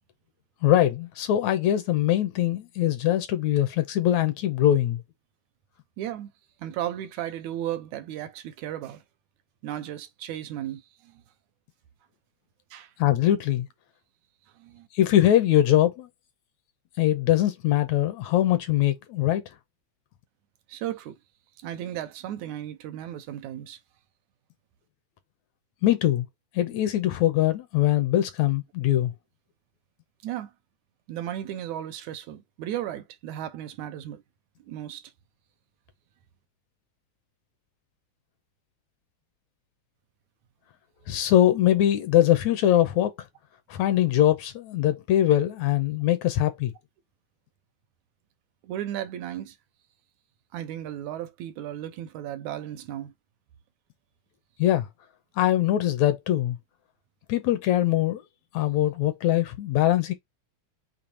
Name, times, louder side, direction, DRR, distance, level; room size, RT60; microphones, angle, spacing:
voice 1, 0.6-5.0 13.0-13.7 14.9-16.1 17.0-19.4 25.8-26.3 26.6-29.1 41.1-43.1 43.7-46.7 54.6-54.9 55.4-56.6 57.3-58.2 58.5-60.1, left 12 dB, 75° left, 1.9 m, -22 dB
voice 2, 6.0-6.3 6.6-9.0 9.6-11.2 12.7-12.9 14.6-14.9 20.7-21.2 21.6-23.8 30.2-30.5 31.1-34.2 34.7-35.1 48.6-49.6 50.5-53.1, right 11 dB, 75° right, 2.1 m, -35 dB
6.9 x 2.8 x 2.8 m
omnidirectional pair, 3.6 m